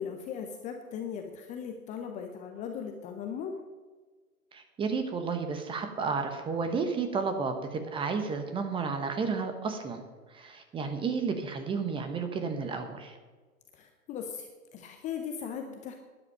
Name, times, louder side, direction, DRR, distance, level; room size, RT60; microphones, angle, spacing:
voice 1, 0.0-3.5 13.7-15.9, left 7 dB, 15° left, 4 dB, 0.7 m, -38 dB
voice 2, 4.5-10.0 10.3-13.2, right 5 dB, 10° right, 7 dB, 1.0 m, -32 dB
12.0 x 10.5 x 5.6 m, 1.4 s
figure-of-eight pair, 120°, 45 cm